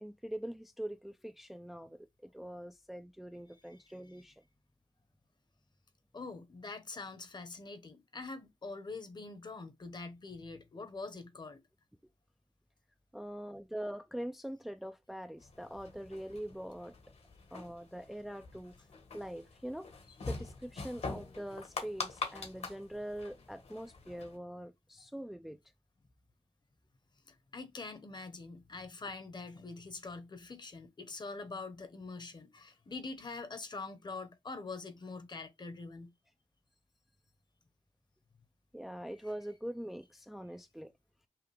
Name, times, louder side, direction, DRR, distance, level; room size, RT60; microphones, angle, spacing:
voice 1, 0.0-4.3 13.1-16.9 17.5-18.7 19.1-19.9 20.3-25.6 38.7-40.9, equal, ahead, 0.3 m, -43 dB
voice 2, 6.1-11.6 27.3-36.1, left 3 dB, 40° left, 0.9 m, -44 dB
sound 1, 15.4-24.4, left 3 dB, 70° left, 1.4 m, -44 dB
5.8 x 2.3 x 3.2 m
wide cardioid pair, 95°, 11 cm